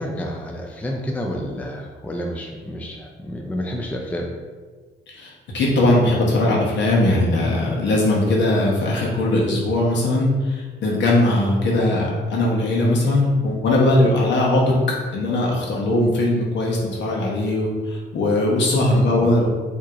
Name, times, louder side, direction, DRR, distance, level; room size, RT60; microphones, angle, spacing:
voice 1, 0.0-4.3 18.8-19.3, equal, 5° left, 1 dB, 0.4 m, -29 dB
voice 2, 5.2-14.6 15.1-19.5, left 1 dB, 65° left, -3 dB, 1.0 m, -20 dB
4.5 x 2.8 x 2.5 m, 1.4 s
cardioid pair, 90°, 20 cm